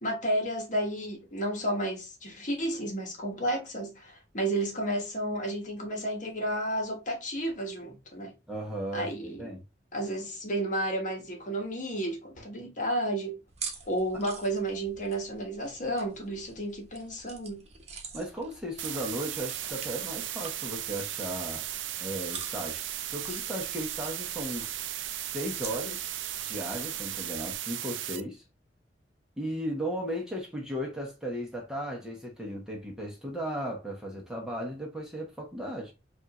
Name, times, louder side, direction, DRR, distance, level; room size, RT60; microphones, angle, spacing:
voice 1, 0.0-8.3 8.9-9.5 9.9-13.4 13.9-17.6, right 1 dB, 45° left, 1.3 m, -32 dB
voice 2, 8.5-9.6 18.1-21.6 22.0-22.8 23.1-24.7 25.2-26.0 26.4-28.4 29.4-35.9, equal, 5° right, 1.0 m, -36 dB
sound 1, 13.5-27.6, right 5 dB, 35° right, 1.0 m, -47 dB
sound 2, 18.8-28.2, right 12 dB, 90° right, 0.5 m, -36 dB
5.3 x 2.6 x 3.0 m
head